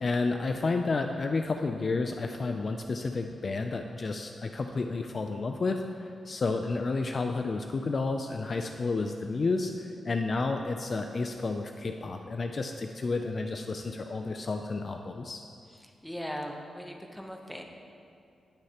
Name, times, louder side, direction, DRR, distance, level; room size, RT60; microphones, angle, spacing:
voice 1, 0.0-15.5, left 3 dB, 35° left, 5 dB, 0.3 m, -31 dB
voice 2, 15.8-17.6, equal, ahead, 2 dB, 0.7 m, -39 dB
18.0 x 6.4 x 2.9 m, 2.5 s
wide cardioid pair, 170°, 0 cm